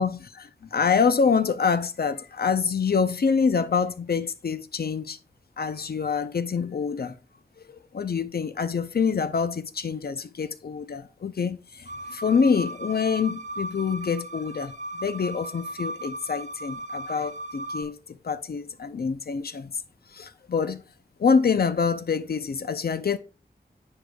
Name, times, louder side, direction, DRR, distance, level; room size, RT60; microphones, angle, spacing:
voice 1, 0.0-5.2 5.6-7.2 7.7-19.8 20.1-20.8 21.2-23.2, left 5 dB, 70° left, 0.6 m, -26 dB
sound 1, 11.9-17.8, right 1 dB, 45° right, 0.7 m, -36 dB
9.7 x 5.3 x 2.3 m
wide cardioid pair, 80°, 17 cm